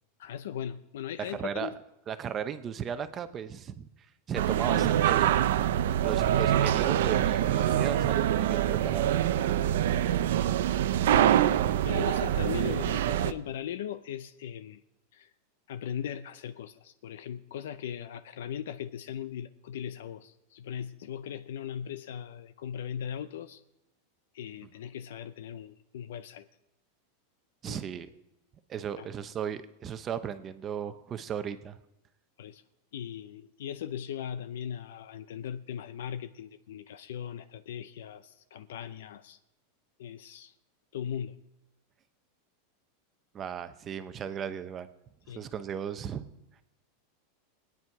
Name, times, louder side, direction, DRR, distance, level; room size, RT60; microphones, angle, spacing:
voice 1, 0.2-1.8 9.9-10.2 11.1-11.4 11.9-14.8 15.1-15.3 15.7-23.6 24.3-26.5 27.6-27.8 29.0-29.1 32.4-32.6 32.9-39.4 40.0-40.5 40.9-41.4 45.3-45.4, left 9 dB, 80° left, 12 dB, 0.6 m, -39 dB
voice 2, 1.3-1.7 2.1-3.9 4.3-5.4 6.0-9.2 27.6-28.1 28.7-31.8 43.3-44.9 45.3-46.2, right 8 dB, 25° right, 11 dB, 0.7 m, -35 dB
sound 1, 4.4-13.3, right 11 dB, 75° right, 0.6 m, -25 dB
22.0 x 9.3 x 4.7 m, 0.90 s
supercardioid pair, 155°, 0 cm